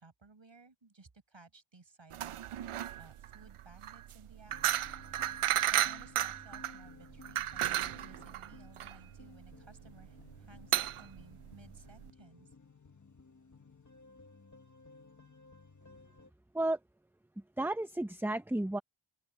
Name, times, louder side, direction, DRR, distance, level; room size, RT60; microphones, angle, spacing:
voice 1, 0.0-2.4 3.0-4.5 5.4-12.5, right 3 dB, 60° right, 5.7 m, -58 dB
sound 1, 2.1-12.1, right 12 dB, 85° right, 0.6 m, -34 dB
sound 2, 4.5-16.3, left 3 dB, 35° left, 1.4 m, -56 dB
voice 2, 17.4-18.8, right 1 dB, 5° right, 0.5 m, -33 dB
open air
wide cardioid pair, 85°, 50 cm